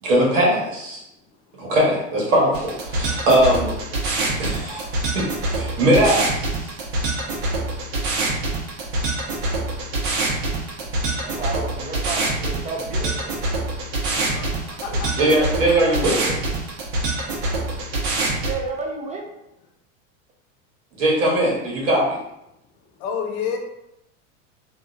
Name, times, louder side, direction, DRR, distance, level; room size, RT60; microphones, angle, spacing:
voice 1, 0.0-1.0 1.6-3.7 4.4-4.8 5.1-6.5 14.9-16.4 20.9-22.0, right 1 dB, 90° right, -3 dB, 1.1 m, -20 dB
sound 1, 2.5-18.5, right 2 dB, 60° right, 1.0 m, -25 dB
voice 2, 10.8-13.4 18.2-19.2, right 3 dB, 20° right, 0 dB, 0.5 m, -32 dB
voice 3, 14.3-15.1 15.6-16.0 23.0-23.6, left 7 dB, 65° left, 3 dB, 0.7 m, -30 dB
2.8 x 2.4 x 2.5 m, 0.83 s
hypercardioid pair, 105°, 37 cm